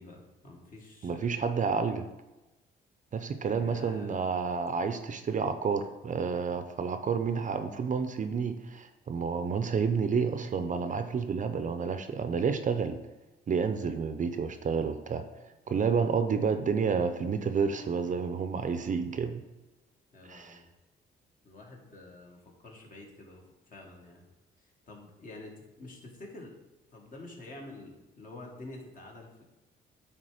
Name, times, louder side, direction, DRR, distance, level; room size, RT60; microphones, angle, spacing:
voice 1, 0.0-1.4 3.5-4.2 15.7-16.0 20.1-20.7 21.4-24.2 24.6-26.5 26.9-29.4, left 2 dB, 45° left, 0 dB, 1.8 m, -48 dB
voice 2, 1.0-2.1 3.1-13.0 13.5-15.2 15.7-19.4 20.3-20.6, right 5 dB, 40° right, 8 dB, 0.6 m, -30 dB
8.8 x 3.5 x 4.9 m, 1.0 s
cardioid pair, 90°, 20 cm